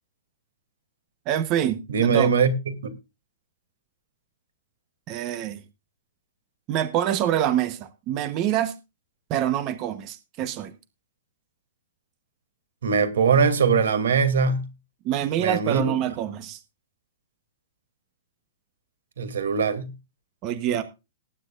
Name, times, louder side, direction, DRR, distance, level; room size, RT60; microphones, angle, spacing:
voice 1, 1.3-2.3 5.1-5.6 6.7-8.7 9.3-10.7 15.0-16.6 20.4-20.8, right 11 dB, 25° right, 1.0 m, -26 dB
voice 2, 1.9-2.9 12.8-14.6 15.4-15.9 19.2-19.9, right 5 dB, 85° right, 2.7 m, -21 dB
19.0 x 10.0 x 2.5 m
hypercardioid pair, 165°, 0 cm